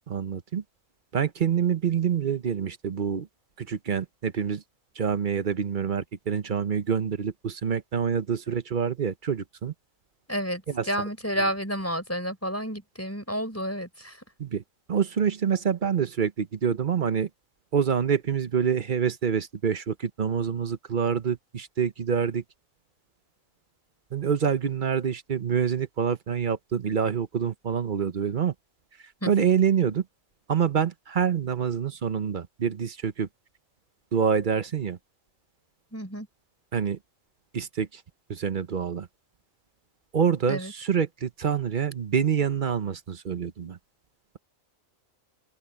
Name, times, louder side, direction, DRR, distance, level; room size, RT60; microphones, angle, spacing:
voice 1, 0.1-0.6 1.1-3.3 3.6-4.6 5.0-9.7 10.7-10.9 14.4-14.6 14.9-17.3 17.7-22.4 24.1-28.5 29.2-30.0 30.5-33.3 34.1-35.0 36.7-37.0 37.5-38.0 38.3-39.1 40.1-43.8, right 7 dB, 45° right, 0.9 m, -26 dB
voice 2, 10.3-14.2 29.2-29.3 35.9-36.3 40.5-40.7, equal, 10° left, 5.1 m, -30 dB
open air
omnidirectional pair, 1.4 m